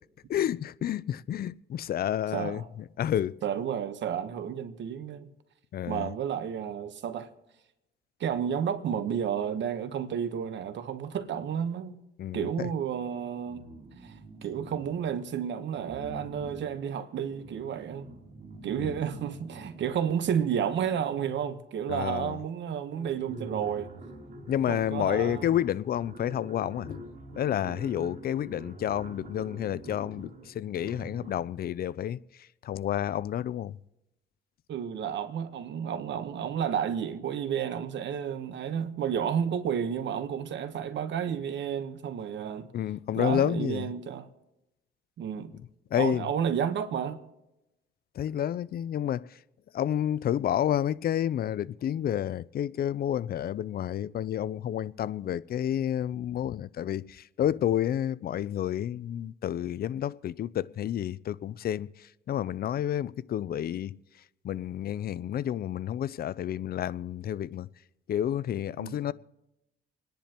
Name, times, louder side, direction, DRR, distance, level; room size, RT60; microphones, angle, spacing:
voice 1, 0.3-2.6 3.0-3.4 5.7-6.1 12.2-12.7 18.8-19.0 21.9-22.4 24.5-27.0 27.4-32.2 32.6-33.8 42.7-43.9 45.9-46.3 48.2-49.3 49.7-61.9 62.3-64.0 64.4-67.7 68.1-69.1, left 10 dB, 50° left, 0.4 m, -30 dB
voice 2, 2.3-2.7 3.4-5.3 5.9-7.3 8.2-12.0 12.3-13.6 14.0-14.2 14.4-18.1 18.6-23.9 24.7-25.5 34.7-42.7 43.1-44.3 45.2-45.5 45.9-47.2 68.8-69.0, right 8 dB, 65° right, 1.1 m, -31 dB
sound 1, 13.5-15.3 15.7-21.4 22.3-22.4 22.7-31.6, right 2 dB, 45° right, 2.7 m, -46 dB
27.5 x 10.5 x 2.9 m
cardioid pair, 90°, 20 cm